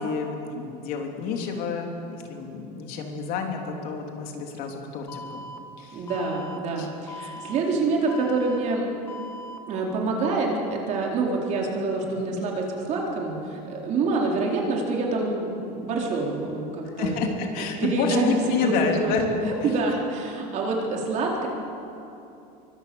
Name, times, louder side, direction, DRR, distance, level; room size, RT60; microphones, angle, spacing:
voice 1, 0.0-5.5 5.8-6.1 6.8-6.9 7.4-7.5 12.1-12.3 17.0-19.2 19.6-19.7, left 5 dB, 45° left, 2 dB, 3.2 m, -29 dB
Alarm, 5.1-5.6 6.1-6.6 7.1-7.6 8.1-8.6 9.1-9.6, left 2 dB, 15° left, 1.4 m, -39 dB
voice 2, 5.9-8.8 9.7-17.2 17.8-21.5, right 3 dB, 35° right, -1 dB, 4.1 m, -26 dB
26.0 x 24.0 x 7.1 m, 2.9 s
cardioid pair, 170°, 20 cm